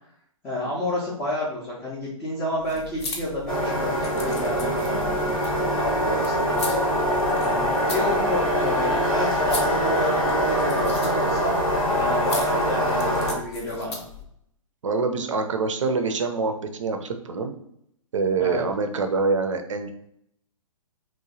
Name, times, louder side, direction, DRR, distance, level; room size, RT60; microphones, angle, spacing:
voice 1, 0.4-6.6 7.4-11.5 11.9-14.0 18.4-18.7, left 1 dB, 10° left, -6 dB, 0.3 m, -30 dB
sound 1, 2.6-14.2, left 4 dB, 50° left, 0.6 m, -38 dB
sound 2, 3.5-13.3, equal, 85° left, 0.9 m, -23 dB
voice 2, 14.8-17.5 18.1-19.9, right 4 dB, 60° right, 7 dB, 0.5 m, -25 dB
3.0 x 2.1 x 2.7 m, 0.73 s
figure-of-eight pair, 125°, 18 cm